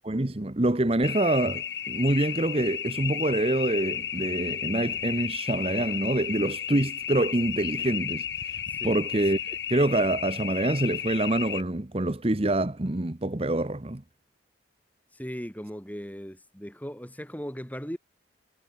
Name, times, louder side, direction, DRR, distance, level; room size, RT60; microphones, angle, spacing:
voice 1, 0.0-14.0, right 1 dB, 30° right, 1.0 m, -26 dB
sound 1, 1.0-11.6, left 9 dB, 65° left, 3.2 m, -33 dB
voice 2, 8.7-9.0 15.1-18.0, equal, 10° left, 4.2 m, -38 dB
head